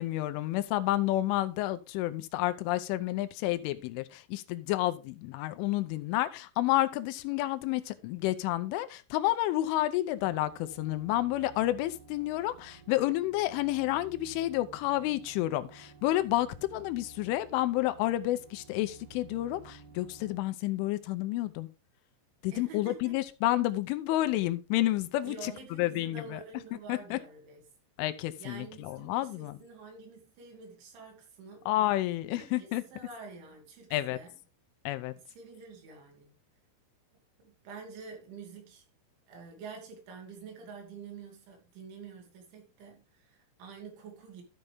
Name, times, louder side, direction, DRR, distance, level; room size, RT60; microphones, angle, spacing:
voice 1, 0.0-21.7 22.4-26.4 26.9-27.2 28.0-29.6 31.7-32.8 33.9-34.2 34.9-35.1, left 16 dB, 85° left, 3.2 m, -30 dB
sound 1, 10.2-20.4, right 6 dB, 45° right, 3.3 m, -54 dB
voice 2, 22.5-23.2 25.2-27.6 28.4-31.7 32.3-34.3 35.3-36.3 37.4-38.8 39.3-44.4, right 4 dB, 75° right, 5.1 m, -47 dB
13.0 x 6.8 x 3.5 m
omnidirectional pair, 5.5 m